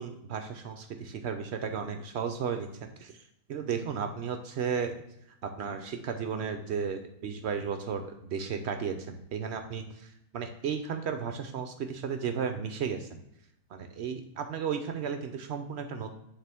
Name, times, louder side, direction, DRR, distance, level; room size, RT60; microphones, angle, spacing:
voice 1, 0.0-3.2 3.5-4.9 5.4-13.2 13.7-16.1, right 6 dB, 65° right, 7 dB, 0.7 m, -34 dB
9.1 x 3.7 x 3.5 m, 0.80 s
omnidirectional pair, 1.6 m